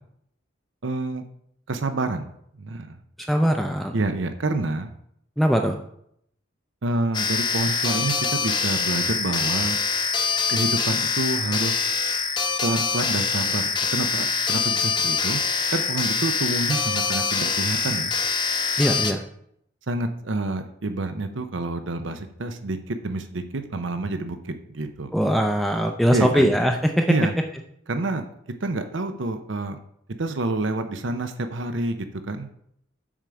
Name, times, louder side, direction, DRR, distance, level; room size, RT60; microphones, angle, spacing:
voice 1, 0.8-1.2 1.7-2.3 2.6-3.0 3.9-4.9 6.8-9.8 10.5-11.8 12.6-13.6 13.9-15.4 15.7-18.1 19.9-25.1 26.1-26.5 27.1-27.3 27.9-28.3 28.6-29.8 30.2-32.5, right 2 dB, 75° right, 8 dB, 0.7 m, -28 dB
voice 2, 3.3-4.0 5.4-5.8 18.8-19.2 25.1-27.1, equal, ahead, 3 dB, 0.5 m, -21 dB
sound 1, 7.1-19.1, left 5 dB, 25° left, 0.9 m, -24 dB
7.4 x 4.9 x 6.8 m, 0.70 s
head